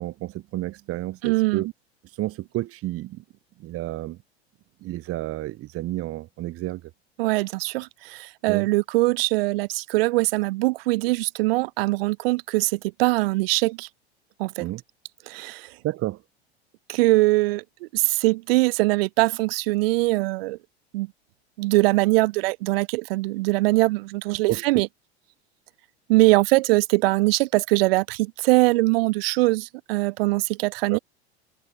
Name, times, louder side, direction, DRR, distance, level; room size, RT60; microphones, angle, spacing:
voice 1, 0.0-1.7 2.0-3.2 3.6-4.2 4.8-6.8 8.5-8.7 14.6-14.8 15.8-16.2 24.5-24.6 30.9-31.0, right 16 dB, 45° right, 3.9 m, -30 dB
voice 2, 1.2-1.6 7.2-13.9 14.4-14.7 15.3-15.7 16.9-20.6 20.9-21.1 21.6-24.9 26.1-31.0, right 22 dB, 60° right, 5.8 m, -22 dB
open air
hypercardioid pair, 85°, 32 cm